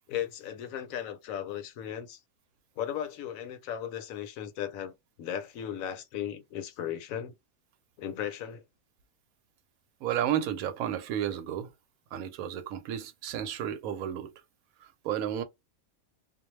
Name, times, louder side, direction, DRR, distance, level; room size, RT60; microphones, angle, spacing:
voice 1, 0.1-2.2 2.8-7.3 8.0-8.6, left 10 dB, 75° left, 1.0 m, -36 dB
voice 2, 10.0-11.7 12.1-14.3 14.8-15.4, right 10 dB, 80° right, 1.0 m, -32 dB
2.4 x 2.1 x 3.0 m
omnidirectional pair, 1.5 m